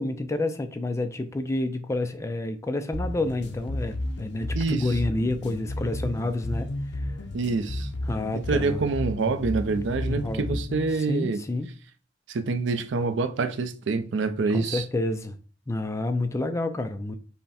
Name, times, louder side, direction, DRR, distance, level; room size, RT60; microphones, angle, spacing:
voice 1, 0.0-7.1 8.1-8.8 10.1-10.6 10.9-11.7 14.5-15.4 15.7-17.2, left 2 dB, 15° left, 0.3 m, -29 dB
sound 1, 2.9-11.0, left 1 dB, 60° left, 0.6 m, -33 dB
voice 2, 4.5-4.9 7.3-7.9 8.3-11.4 12.3-14.8, right 4 dB, 65° right, 0.5 m, -26 dB
5.6 x 2.1 x 4.1 m
head